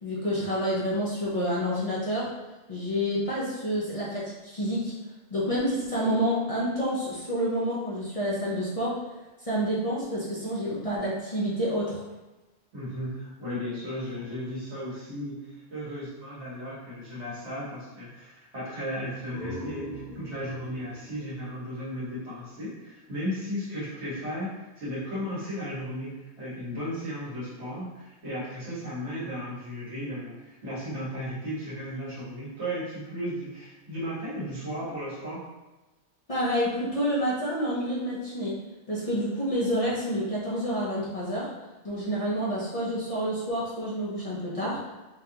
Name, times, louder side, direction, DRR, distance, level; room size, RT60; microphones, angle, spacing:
voice 1, 0.0-2.3 2.7-4.9 5.3-9.0 9.4-12.0 36.3-38.6 38.9-41.5 41.8-44.8, equal, 35° left, -8 dB, 0.7 m, -28 dB
voice 2, 12.7-35.4, equal, 70° right, -9 dB, 1.8 m, -35 dB
sound 1, 19.0-22.6, left 1 dB, 80° left, 1.5 m, -43 dB
4.1 x 2.5 x 2.8 m, 1.1 s
omnidirectional pair, 1.2 m